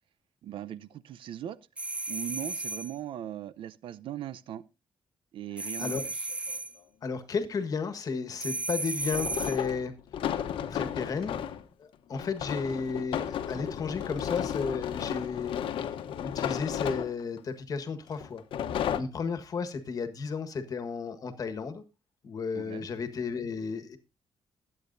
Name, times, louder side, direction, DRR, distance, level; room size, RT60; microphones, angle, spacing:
voice 1, 0.4-1.6 2.1-4.6 5.3-6.3 22.5-22.9, right 11 dB, 75° right, 0.6 m, -39 dB
sound 1, 1.8-3.0 5.6-6.8 8.4-9.7, right 2 dB, 15° right, 0.6 m, -34 dB
sound 2, 6.3-6.4 9.0-11.6 12.2-17.4 18.2-19.0, left 9 dB, 80° left, 1.0 m, -33 dB
voice 2, 7.0-9.9 10.7-11.4 11.8-15.6 16.2-18.4 18.9-21.8 22.2-24.0, left 5 dB, 45° left, 1.5 m, -33 dB
21.0 x 8.5 x 2.6 m
cardioid pair, 155°, 9 cm